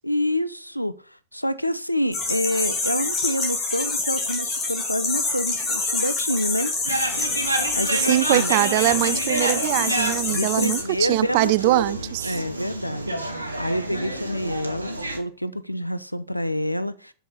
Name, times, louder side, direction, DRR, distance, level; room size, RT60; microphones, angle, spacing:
voice 1, 0.0-6.7 7.7-8.6 10.3-12.0 12.2-17.1, equal, 90° left, 0.4 m, -27 dB
sound 1, 2.1-10.8, left 3 dB, 25° left, 2.8 m, -26 dB
sound 2, 6.8-15.2, right 1 dB, 85° right, 1.0 m, -29 dB
voice 2, 8.1-12.4, right 19 dB, 50° right, 0.3 m, -22 dB
6.1 x 5.6 x 5.4 m
figure-of-eight pair, 90°, 0 cm